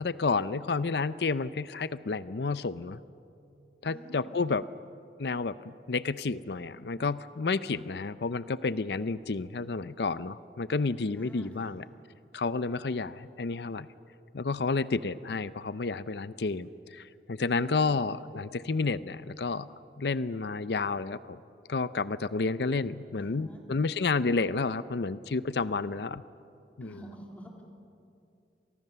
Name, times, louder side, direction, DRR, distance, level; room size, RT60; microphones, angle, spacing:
voice 1, 0.0-3.0 3.8-4.7 5.2-11.8 12.3-13.9 14.3-19.7 20.0-21.4 21.7-26.2 26.8-27.0, left 4 dB, 70° left, 15 dB, 0.6 m, -30 dB
voice 2, 3.8-4.4 11.1-11.8 17.5-18.0 23.2-23.6 26.8-27.6, equal, 10° left, 0 dB, 3.7 m, -48 dB
30.0 x 25.5 x 6.9 m, 2.6 s
head